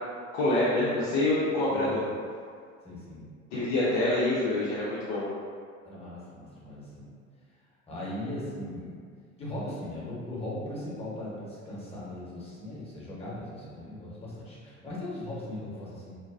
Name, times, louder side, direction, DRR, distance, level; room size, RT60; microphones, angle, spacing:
voice 1, 0.3-2.0 3.5-5.3, left 2 dB, 45° left, -7 dB, 0.5 m, -26 dB
voice 2, 1.7-2.1 2.8-3.3 5.8-7.1 7.9-8.9 9.4-16.2, left 1 dB, 15° left, -7 dB, 0.9 m, -38 dB
2.5 x 2.2 x 2.3 m, 2.1 s
figure-of-eight pair, 65°, 39 cm